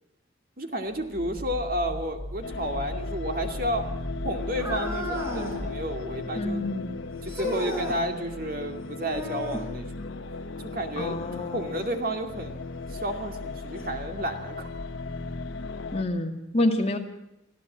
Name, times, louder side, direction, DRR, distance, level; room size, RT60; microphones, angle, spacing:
voice 1, 0.6-3.9 4.2-6.6 7.2-10.1 10.6-14.7, equal, 45° right, 5 dB, 2.4 m, -32 dB
sound 1, 0.9-6.3, equal, 60° left, 7.4 m, -38 dB
sound 2, 2.4-16.0, left 3 dB, 80° left, 1.0 m, -37 dB
sound 3, 4.6-5.6 7.3-8.0 9.0-9.7 11.8-11.9 12.7-12.8 13.8-13.9, left 1 dB, 15° right, 5.2 m, -33 dB
voice 2, 6.4-6.9 11.0-11.8 15.9-17.0, left 1 dB, 30° left, 3 dB, 2.2 m, -28 dB
25.0 x 15.5 x 7.5 m, 0.87 s
head